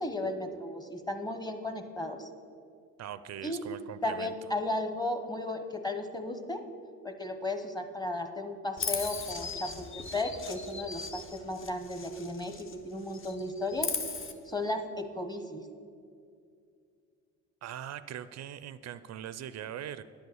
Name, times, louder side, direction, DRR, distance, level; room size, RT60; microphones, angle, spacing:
voice 1, 0.0-2.3 3.4-3.6 4.0-6.6 7.0-13.9 14.5-15.7, left 2 dB, 15° left, 7 dB, 1.0 m, -35 dB
voice 2, 3.0-4.3 17.6-20.0, right 10 dB, 60° right, 14 dB, 0.4 m, -41 dB
Chirp tweet, 8.8-12.8 13.1-14.3, left 4 dB, 45° left, 1.0 m, -38 dB
10.0 x 5.4 x 7.7 m, 2.3 s
cardioid pair, 90°, 30 cm